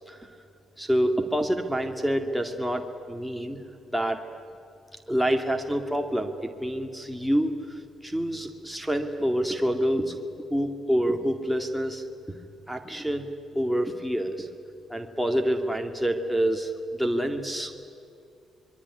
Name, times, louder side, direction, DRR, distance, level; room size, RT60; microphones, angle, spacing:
voice 1, 0.8-3.6 3.9-4.2 5.1-10.2 10.5-12.0 12.7-13.3 13.5-14.5 14.9-16.7 17.0-17.9, equal, ahead, 3 dB, 2.2 m, -27 dB
26.0 x 22.5 x 9.8 m, 2.6 s
cardioid pair, 90°, 0 cm